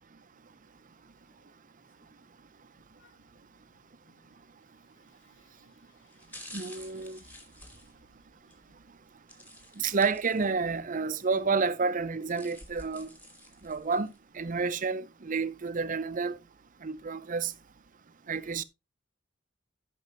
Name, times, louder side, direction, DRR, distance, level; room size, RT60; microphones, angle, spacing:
voice 1, 0.6-1.5 1.9-2.4 3.0-8.7, left 4 dB, 85° left, 1.3 m, -68 dB
sound 1, 5.1-5.4 6.0-8.6 9.3-10.7 11.1-11.2 12.0-14.2 14.7-14.8, left 1 dB, 10° left, 2.7 m, -50 dB
voice 2, 6.5-7.2 9.8-13.1 13.6-16.4 16.8-17.5 18.3-18.6, right 4 dB, 45° right, 0.7 m, -30 dB
13.5 x 6.2 x 3.0 m
head